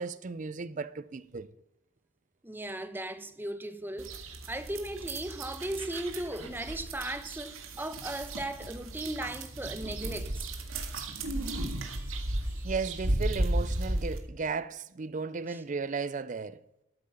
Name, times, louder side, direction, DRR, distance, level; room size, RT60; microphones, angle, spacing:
voice 1, 0.0-1.5 12.6-16.6, right 4 dB, 40° right, 0.4 m, -35 dB
voice 2, 2.4-10.4 10.9-11.0 11.4-12.2 12.6-12.7 15.5-15.6, right 1 dB, 10° right, 0.9 m, -37 dB
sound 1, 4.0-14.2, right 1 dB, 85° right, 1.9 m, -34 dB
13.0 x 8.7 x 5.7 m
head